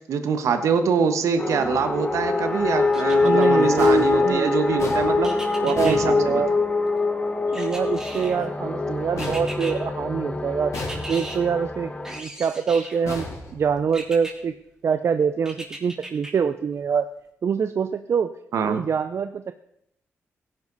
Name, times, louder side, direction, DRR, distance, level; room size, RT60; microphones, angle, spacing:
voice 1, 0.1-5.3 5.6-6.6 18.5-18.8, right 6 dB, 75° right, 8 dB, 1.4 m, -24 dB
sound 1, 1.4-12.2, left 3 dB, 25° left, 1.4 m, -24 dB
sound 2, 2.9-3.7 5.2-6.0 7.5-8.5 9.2-9.7 10.7-11.4 12.0-13.0 13.9-14.3 15.5-16.3 16.8-16.9, right 1 dB, 10° right, 3.1 m, -38 dB
voice 2, 3.0-4.6 5.6-6.5 7.5-10.8 11.1-13.3 13.5-14.5 14.8-17.1 17.4-18.3 18.7-19.5, right 6 dB, 60° right, 10 dB, 0.6 m, -25 dB
sound 3, 3.8-6.8 9.2-10.2 10.7-11.5 13.0-14.1, left 3 dB, 75° left, 3.6 m, -37 dB
16.5 x 10.5 x 4.1 m, 0.76 s
cardioid pair, 70°, 5 cm